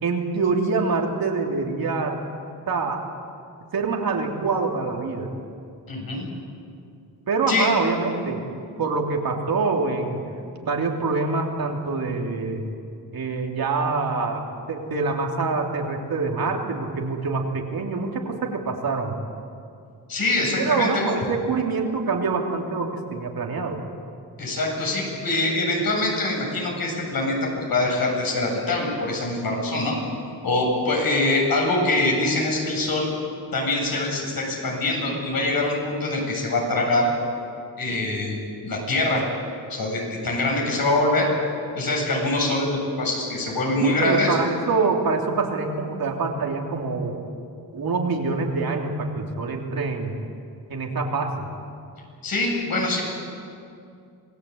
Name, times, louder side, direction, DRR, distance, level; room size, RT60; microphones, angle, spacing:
voice 1, 0.0-2.2 2.7-3.0 3.7-5.3 7.3-8.4 8.8-10.2 10.6-12.6 13.1-14.4 14.7-19.2 20.6-23.8 43.8-47.2 47.7-50.1 50.7-51.5, right 4 dB, 60° right, 1 dB, 3.2 m, -25 dB
voice 2, 5.9-6.3 7.5-7.7 20.1-21.1 24.4-29.9 30.4-33.1 33.5-37.1 37.8-38.4 38.6-39.2 39.7-41.3 41.7-44.3 52.2-53.0, left 2 dB, 60° left, -1 dB, 7.8 m, -24 dB
26.5 x 19.0 x 8.7 m, 2.4 s
wide cardioid pair, 125°, 40 cm